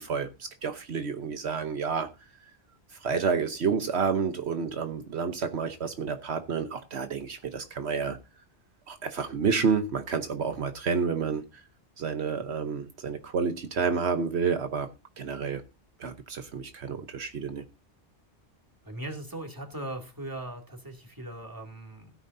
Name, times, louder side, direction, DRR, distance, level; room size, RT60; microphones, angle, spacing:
voice 1, 0.0-2.1 3.0-8.2 8.9-11.4 12.0-14.9 15.2-15.6 16.0-17.6, right 5 dB, 75° right, 1.3 m, -29 dB
voice 2, 18.8-22.1, right 1 dB, 20° right, 2.6 m, -39 dB
16.0 x 9.8 x 2.7 m
omnidirectional pair, 1.1 m